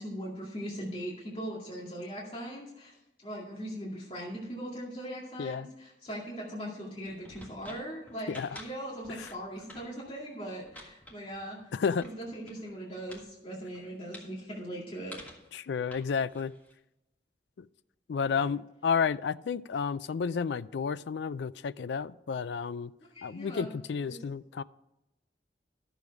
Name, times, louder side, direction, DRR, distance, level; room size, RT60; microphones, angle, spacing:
voice 1, 0.0-15.2 18.3-18.5 23.1-23.7 24.0-24.2, equal, 30° left, -4 dB, 2.2 m, -40 dB
sound 1, 6.9-12.7 13.1-13.3 13.6-14.3 15.1-15.5 15.9-16.7, equal, 10° left, 1.6 m, -50 dB
voice 2, 8.3-8.6 9.2-9.3 11.7-12.1 15.5-16.5 17.6-17.7 18.1-22.9 23.2-24.6, left 6 dB, 75° left, 15 dB, 0.4 m, -31 dB
12.0 x 7.0 x 4.8 m, 0.93 s
head